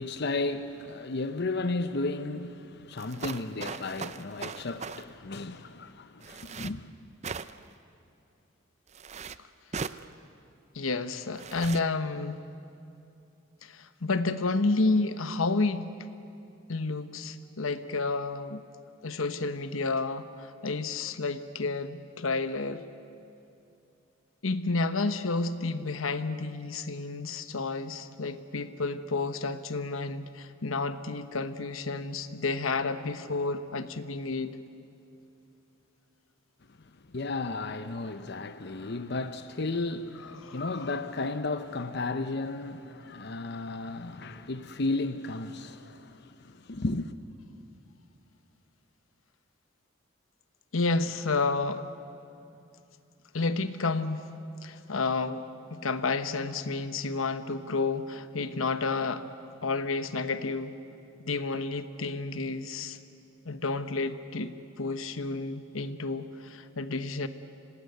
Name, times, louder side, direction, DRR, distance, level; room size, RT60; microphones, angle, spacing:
voice 1, 0.0-6.9 36.8-47.1, left 3 dB, 55° left, 0.8 m, -34 dB
sound 1, 3.0-5.0 6.2-6.7 7.2-7.7 8.9-9.4 9.7-10.0 11.3-11.8, right 5 dB, 35° right, 0.5 m, -38 dB
voice 2, 10.7-12.4 13.6-15.9 16.7-18.6 19.0-22.8 24.4-34.6 40.4-40.6 50.7-51.8 53.3-54.3 54.6-59.2 59.6-60.7 61.2-63.0 63.4-67.3, left 3 dB, 85° left, 1.1 m, -30 dB
27.0 x 18.5 x 9.4 m
head